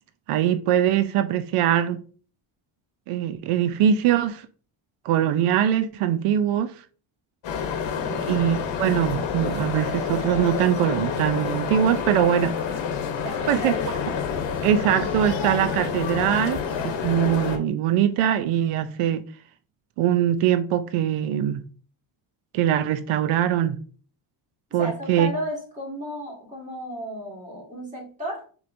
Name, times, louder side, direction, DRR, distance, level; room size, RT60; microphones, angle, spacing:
voice 1, 0.3-2.0 3.1-4.5 5.0-6.7 8.3-12.5 13.5-13.7 14.6-19.2 20.0-21.6 22.5-23.8 24.7-25.3, right 10 dB, 85° right, 0.6 m, -22 dB
sound 1, 7.4-17.6, left 6 dB, 60° left, 0.9 m, -28 dB
voice 2, 8.0-8.4 13.2-14.0 24.8-28.4, right 1 dB, 15° right, 1.9 m, -34 dB
6.5 x 3.1 x 2.5 m
cardioid pair, 145°, 50 cm